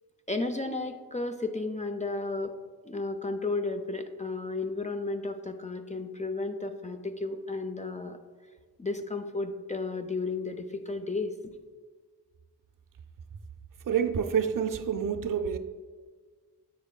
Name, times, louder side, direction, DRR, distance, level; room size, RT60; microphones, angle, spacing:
voice 1, 0.3-2.6 2.8-8.2 8.8-11.4, left 3 dB, 20° left, 6 dB, 0.3 m, -33 dB
voice 2, 13.9-15.6, right 7 dB, 60° right, 10 dB, 0.4 m, -28 dB
7.4 x 5.8 x 2.2 m, 1.5 s
wide cardioid pair, 70°, 38 cm